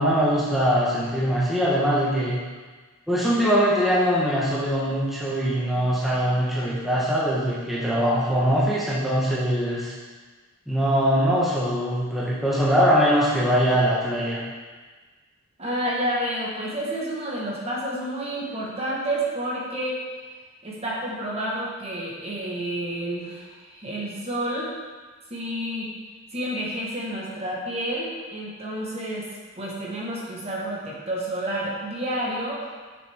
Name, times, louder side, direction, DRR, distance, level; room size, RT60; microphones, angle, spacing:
voice 1, 0.0-2.4 3.1-9.9 10.7-14.4, equal, ahead, -9 dB, 1.1 m, -22 dB
voice 2, 15.6-20.0 20.6-24.7 25.3-25.9 26.3-29.3 29.6-32.7, right 1 dB, 30° right, -5 dB, 1.4 m, -29 dB
7.7 x 6.4 x 3.5 m, 1.4 s
head